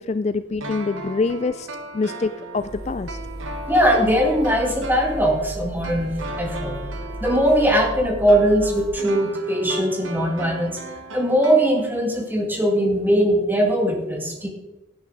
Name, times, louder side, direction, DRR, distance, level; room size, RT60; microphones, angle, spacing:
voice 1, 0.0-1.7 1.9-3.2, left 3 dB, 35° left, 12 dB, 0.3 m, -25 dB
sound 1, 0.6-12.2 12.5-12.6, right 2 dB, 85° right, 1.3 m, -37 dB
sound 2, 2.5-8.9, right 1 dB, 35° right, 4.9 m, -35 dB
voice 2, 3.7-6.8 7.2-10.8 11.1-14.5, equal, 10° right, 1 dB, 2.1 m, -20 dB
17.0 x 9.4 x 3.9 m, 1.0 s
head